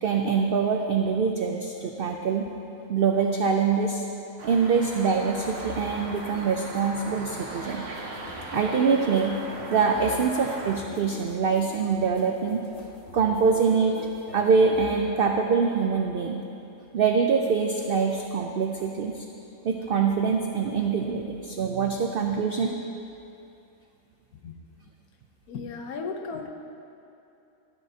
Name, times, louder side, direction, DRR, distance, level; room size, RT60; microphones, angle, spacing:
voice 1, 0.0-2.5 2.9-4.1 4.4-7.9 8.5-9.4 9.7-12.6 13.1-14.0 14.3-16.4 16.9-19.3 19.6-22.7, right 5 dB, 80° right, 3 dB, 0.5 m, -24 dB
sound 1, 4.4-10.8, right 2 dB, 60° right, 1.4 m, -39 dB
sound 2, 5.3-15.0, left 3 dB, 60° left, 2.0 m, -44 dB
voice 2, 25.5-26.5, left 4 dB, 80° left, 4 dB, 1.3 m, -36 dB
13.0 x 10.0 x 2.8 m, 2.8 s
omnidirectional pair, 1.6 m